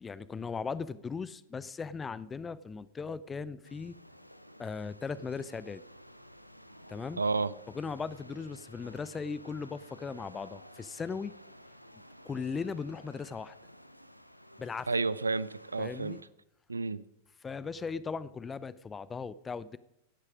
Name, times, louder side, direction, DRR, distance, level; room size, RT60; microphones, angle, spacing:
voice 1, 0.0-4.0 4.6-5.8 6.9-7.2 7.7-11.3 12.2-13.5 14.6-14.9 15.8-16.2 17.4-19.8, left 5 dB, 15° left, 0.5 m, -38 dB
sound 1, 3.6-16.2, equal, 90° left, 0.7 m, -53 dB
voice 2, 7.2-7.5 14.9-16.2 16.7-17.0, right 4 dB, 80° right, 0.5 m, -30 dB
16.5 x 9.8 x 5.1 m
figure-of-eight pair, 90°, 0 cm